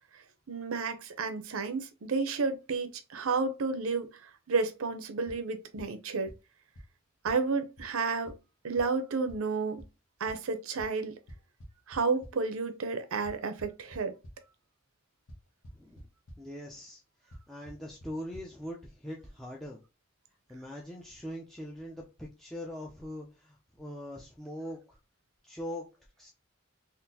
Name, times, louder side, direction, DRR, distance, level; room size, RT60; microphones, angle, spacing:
voice 1, 0.5-4.1 4.5-6.3 7.2-8.3 8.6-9.8 10.2-11.1 11.9-14.1, right 4 dB, 80° right, 0.6 m, -31 dB
sound 1, 5.3-5.4 5.8-5.9 6.3-6.4 6.8-6.9 7.3-7.4 7.8-7.9 8.3-8.4 8.8-8.9 9.3-9.4 9.8-9.9 10.3-10.4 10.8-10.9 11.3-12.3 13.3-14.3 15.3-15.4 15.6-16.0 16.3-16.4 17.3-17.4 17.7-17.8 18.0-18.1 18.3-18.4, equal, 85° left, 1.0 m, -46 dB
voice 2, 15.7-16.1 16.4-19.8 20.5-25.0 25.4-25.9 26.2-26.3, equal, ahead, 0.4 m, -42 dB
3.8 x 2.5 x 2.7 m
head